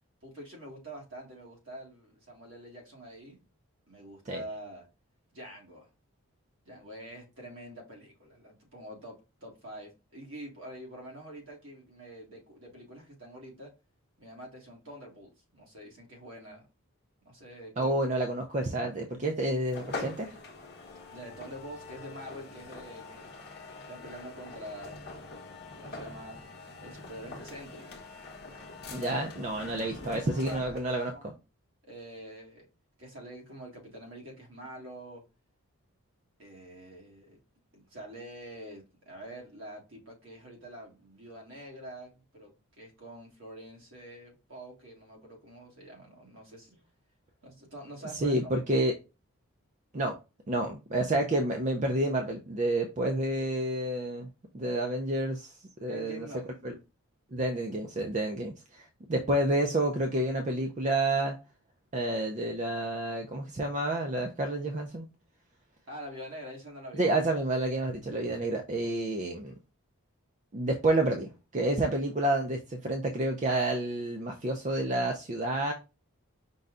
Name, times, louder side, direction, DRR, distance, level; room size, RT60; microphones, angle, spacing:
voice 1, 0.2-3.4 3.9-4.8 5.3-5.9 6.6-13.7 14.2-16.7 17.2-17.9 21.1-23.3 23.9-25.4 25.7-26.4 26.8-27.9 28.8-29.2 30.0-31.4 31.8-32.7 33.0-35.2 36.4-37.4 37.7-46.8 47.4-48.4 48.7-48.8 55.9-56.6 65.9-67.1, right 1 dB, 60° right, 1.7 m, -46 dB
voice 2, 17.8-20.4 28.9-31.1 48.2-48.9 49.9-50.2 50.5-54.3 54.5-56.3 56.6-56.8 57.3-61.4 61.9-65.1 66.9-69.5 70.5-75.7, right 1 dB, 30° right, 0.4 m, -29 dB
sound 1, 19.7-31.0, left 3 dB, 45° left, 0.9 m, -44 dB
5.3 x 2.2 x 3.6 m
head